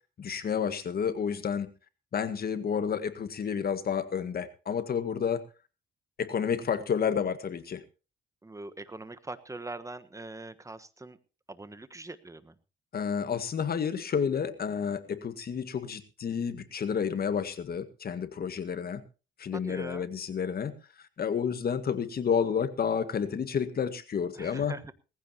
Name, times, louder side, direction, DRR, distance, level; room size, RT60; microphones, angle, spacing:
voice 1, 0.2-1.7 2.1-5.4 6.2-7.8 12.9-19.0 19.4-20.7 21.2-24.7, left 7 dB, 50° left, 11 dB, 1.8 m, -30 dB
voice 2, 8.4-11.2 11.5-12.5 19.5-20.1 24.4-24.9, right 2 dB, 15° right, 12 dB, 1.3 m, -42 dB
19.0 x 15.0 x 2.9 m, 0.32 s
cardioid pair, 90°, 20 cm